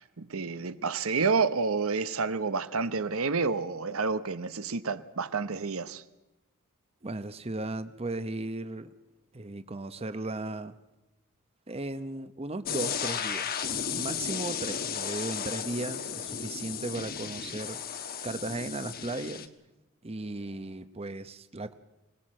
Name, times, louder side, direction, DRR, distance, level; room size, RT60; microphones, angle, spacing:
voice 1, 0.0-6.0, right 4 dB, 75° right, 0.9 m, -29 dB
voice 2, 7.0-8.9 9.3-10.7 11.7-13.5 13.9-17.8 18.2-19.5 20.0-21.7, right 2 dB, 30° right, 0.8 m, -36 dB
sound 1, 12.7-19.5, left 7 dB, 45° left, 1.2 m, -34 dB
25.0 x 19.0 x 7.6 m
head